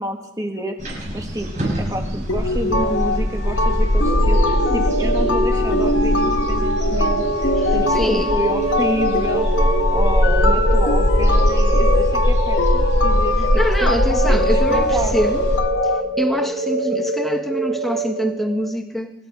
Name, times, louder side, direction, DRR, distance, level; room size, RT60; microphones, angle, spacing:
voice 1, 0.0-1.5 1.8-9.5 9.9-13.5 13.8-14.4 14.7-15.1, equal, 20° right, 4 dB, 1.6 m, -29 dB
sound 1, 0.8-15.6, equal, 40° right, 6.0 m, -21 dB
sound 2, 2.3-16.0, left 2 dB, 80° left, 1.1 m, -23 dB
sound 3, 4.0-18.7, right 1 dB, 65° right, 7.1 m, -25 dB
voice 2, 7.6-8.3 13.5-15.5 15.8-19.1, equal, ahead, 4 dB, 1.2 m, -25 dB
23.5 x 10.5 x 5.0 m, 0.91 s
head